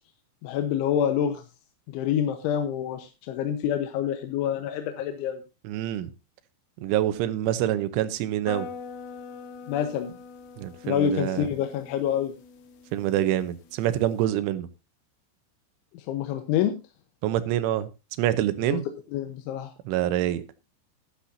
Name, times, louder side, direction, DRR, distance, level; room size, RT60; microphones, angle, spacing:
voice 1, 0.4-1.4 1.9-5.4 9.7-10.1 10.8-12.3 16.0-16.7 18.7-18.8 19.1-19.7, left 9 dB, 85° left, 3.4 m, -27 dB
voice 2, 5.7-6.1 6.8-8.7 10.6-11.5 12.9-14.7 17.2-17.9 18.2-18.9 19.9-20.4, right 12 dB, 90° right, 3.4 m, -26 dB
sound 1, 8.5-14.2, left 6 dB, 70° left, 3.4 m, -44 dB
14.5 x 12.0 x 2.7 m
omnidirectional pair, 5.4 m